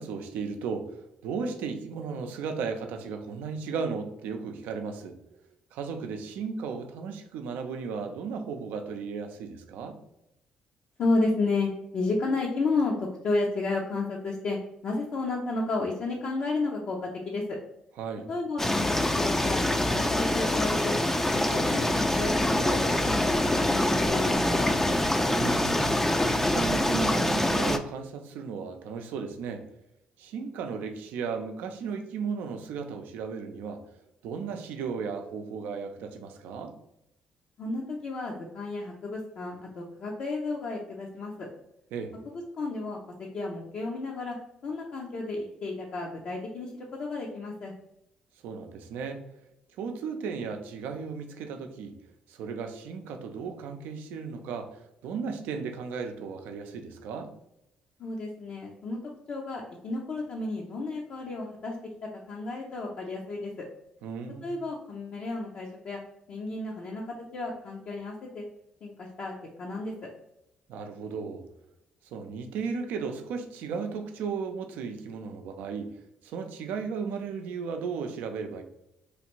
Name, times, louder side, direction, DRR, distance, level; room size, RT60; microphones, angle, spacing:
voice 1, 0.0-5.4 5.7-10.0 18.0-18.3 25.3-26.0 26.3-29.6 30.2-33.8 34.2-36.7 41.9-42.1 48.4-49.2 49.8-52.0 52.3-57.3 64.0-64.6 70.7-71.4 72.1-78.6, right 5 dB, 75° right, 5 dB, 0.5 m, -35 dB
voice 2, 11.0-14.6 14.8-17.6 18.3-21.0 21.3-24.7 37.6-41.5 42.3-44.4 44.6-47.7 58.0-59.0 59.3-61.8 62.3-63.7 64.4-66.0 66.3-68.4 68.8-69.3 69.6-69.9, left 3 dB, 60° left, -2 dB, 0.6 m, -32 dB
sound 1, 18.6-27.8, left 1 dB, 10° left, 0.4 m, -25 dB
3.2 x 2.5 x 3.0 m, 0.82 s
supercardioid pair, 55°, 3 cm